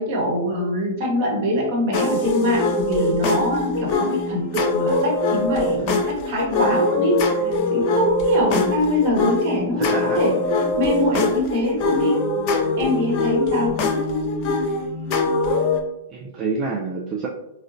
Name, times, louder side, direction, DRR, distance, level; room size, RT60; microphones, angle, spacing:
voice 1, 0.0-10.4 10.8-12.2 12.8-13.8, equal, 50° right, -2 dB, 1.1 m, -23 dB
sound 1, 1.9-15.8, left 2 dB, 40° left, 0.5 m, -22 dB
voice 2, 9.7-10.2 16.1-17.3, right 4 dB, 30° right, -3 dB, 0.4 m, -27 dB
3.7 x 2.1 x 2.5 m, 0.91 s
figure-of-eight pair, 105°, 0 cm